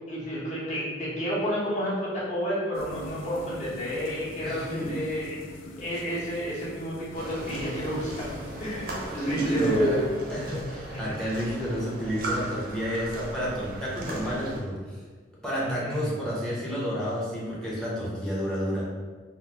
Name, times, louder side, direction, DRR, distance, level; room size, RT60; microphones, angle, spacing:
voice 1, 0.1-5.4 5.8-10.1 10.9-11.2 15.6-16.2, equal, 40° left, -8 dB, 1.0 m, -30 dB
sound 1, 2.7-10.2, left 1 dB, 85° left, 0.3 m, -44 dB
voice 2, 4.4-4.9 9.1-10.0 10.3-15.0 15.4-18.9, equal, 5° left, -7 dB, 0.7 m, -30 dB
sound 2, 7.1-14.6, right 1 dB, 50° right, 0.6 m, -37 dB
3.9 x 2.0 x 2.8 m, 1.5 s
head